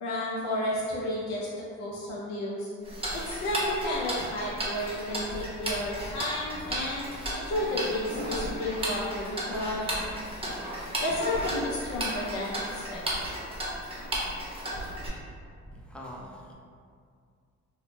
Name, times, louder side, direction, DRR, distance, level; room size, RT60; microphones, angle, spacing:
voice 1, 0.0-2.7 3.1-7.1 7.3-10.0 11.0-13.3, left 1 dB, 65° left, -6 dB, 0.6 m, -32 dB
Tick-tock, 2.8-15.1, right 1 dB, 20° right, 0.7 m, -34 dB
voice 2, 15.7-16.5, equal, 5° left, -3 dB, 0.4 m, -43 dB
2.9 x 2.0 x 3.1 m, 2.2 s
cardioid pair, 90°, 30 cm